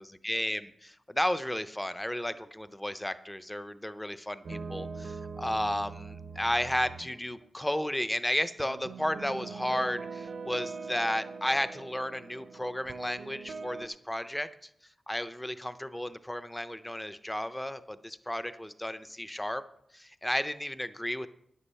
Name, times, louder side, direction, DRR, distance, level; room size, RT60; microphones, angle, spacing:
voice 1, 0.0-14.7 15.1-19.6 19.9-21.3, left 1 dB, 5° left, 12 dB, 0.5 m, -33 dB
sound 1, 4.4-7.5 8.6-13.9, right 4 dB, 55° right, 0.7 m, -42 dB
10.0 x 9.9 x 5.5 m, 0.74 s
wide cardioid pair, 145°, 0 cm